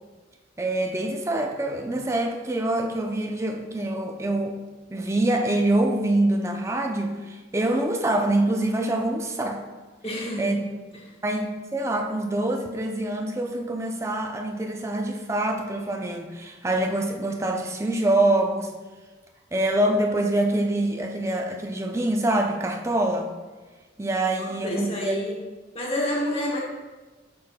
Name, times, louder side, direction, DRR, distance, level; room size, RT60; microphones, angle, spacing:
voice 1, 0.6-4.6 4.9-9.6 10.4-10.6 11.2-18.7 19.5-23.3 24.0-25.1, right 1 dB, 15° right, 3 dB, 0.4 m, -25 dB
voice 2, 10.0-10.6 24.3-25.3 25.7-26.6, equal, 35° left, -3 dB, 1.3 m, -28 dB
7.5 x 5.6 x 2.2 m, 1.3 s
head